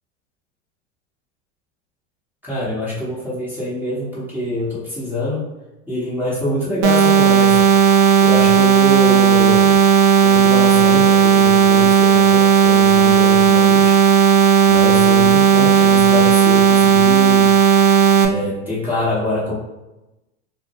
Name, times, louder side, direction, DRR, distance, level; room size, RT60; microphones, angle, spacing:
voice 1, 2.4-5.5 5.9-7.7 8.2-9.8 10.2-14.0 14.7-17.5 18.3-19.6, left 1 dB, 5° right, -9 dB, 0.9 m, -25 dB
sound 1, 6.8-18.2, right 7 dB, 65° right, 0.5 m, -13 dB
2.1 x 2.1 x 2.7 m, 0.99 s
hypercardioid pair, 95°, 41 cm